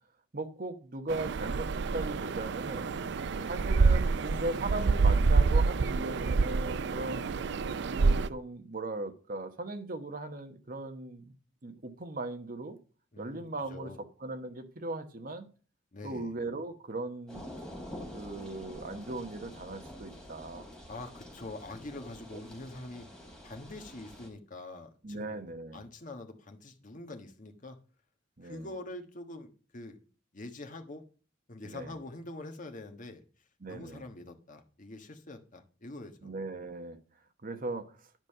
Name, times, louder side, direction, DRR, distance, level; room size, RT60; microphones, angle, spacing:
voice 1, 0.3-2.9 3.5-7.3 7.9-11.3 11.6-12.8 13.2-13.9 14.2-15.5 16.0-17.4 18.1-20.7 25.0-25.8 28.4-28.7 31.6-31.9 33.6-34.0 36.2-37.0 37.4-37.9, right 2 dB, 50° right, 1.2 m, -38 dB
sound 1, 1.1-8.3, right 4 dB, 65° right, 0.5 m, -27 dB
voice 2, 2.7-3.6 6.9-7.5 13.1-14.0 15.9-16.3 20.9-23.1 23.4-25.4 25.7-27.8 28.4-30.0 30.3-31.0 31.5-33.2 33.7-36.3, left 2 dB, 45° left, 1.4 m, -45 dB
sound 2, 17.3-24.3, left 1 dB, 5° left, 3.4 m, -47 dB
10.5 x 5.3 x 6.6 m
head